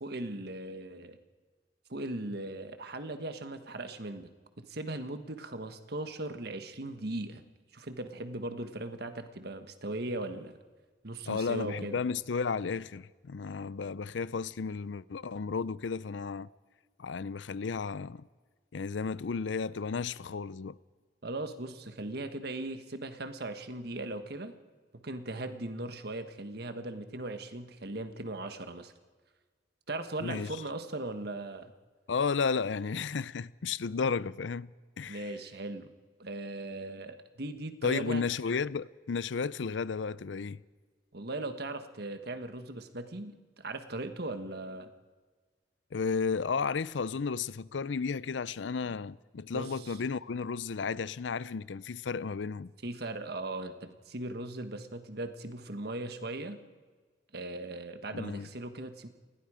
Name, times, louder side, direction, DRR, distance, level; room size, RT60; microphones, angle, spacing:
voice 1, 0.0-1.2 1.9-4.3 4.6-7.4 7.7-10.5 11.0-12.0 21.2-24.5 24.9-28.9 29.9-31.7 35.1-35.9 36.2-38.2 41.1-44.9 49.5-50.0 52.8-56.6 57.3-59.1, right 2 dB, 60° right, 1.5 m, -38 dB
voice 2, 11.3-16.5 17.0-18.2 18.7-20.8 30.2-30.6 32.1-34.7 35.0-35.3 37.8-40.6 45.9-52.7 58.1-58.5, left 5 dB, 90° left, 0.5 m, -33 dB
29.5 x 21.0 x 5.0 m
head